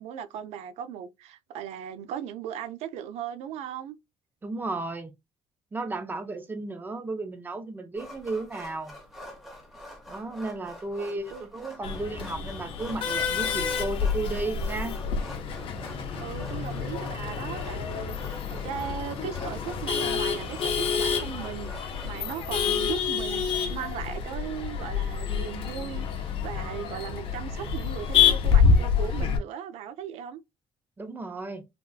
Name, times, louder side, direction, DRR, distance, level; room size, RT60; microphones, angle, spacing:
voice 1, 0.0-4.0 11.0-11.4 16.2-30.4, right 9 dB, 85° right, 0.4 m, -38 dB
voice 2, 4.4-5.1 5.7-8.9 10.1-15.0 31.0-31.7, right 2 dB, 20° right, 0.6 m, -34 dB
sound 1, 7.9-22.3, equal, ahead, 1.0 m, -47 dB
Male speech man speaking / Laughter / Chatter, 11.8-29.4, left 6 dB, 55° left, 0.7 m, -27 dB
3.4 x 2.4 x 2.3 m
cardioid pair, 150°, 11 cm